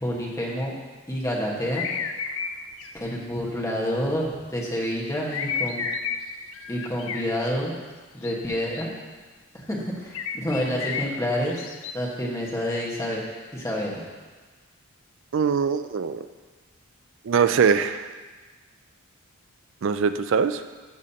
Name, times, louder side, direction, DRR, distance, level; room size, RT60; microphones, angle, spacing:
voice 1, 0.0-0.7 1.1-1.9 2.9-5.9 6.7-7.7 8.1-8.9 9.5-11.6 11.9-13.2 13.5-14.0, equal, 15° left, -4 dB, 1.3 m, -28 dB
sound 1, 1.7-2.5 2.8-2.9 5.3-6.2 6.5-7.2 8.2-8.8 10.1-11.9, left 6 dB, 65° left, 0.4 m, -31 dB
voice 2, 15.3-16.2 17.3-18.1 19.8-20.6, right 6 dB, 55° right, 11 dB, 0.3 m, -22 dB
12.0 x 6.3 x 2.8 m, 1.3 s
head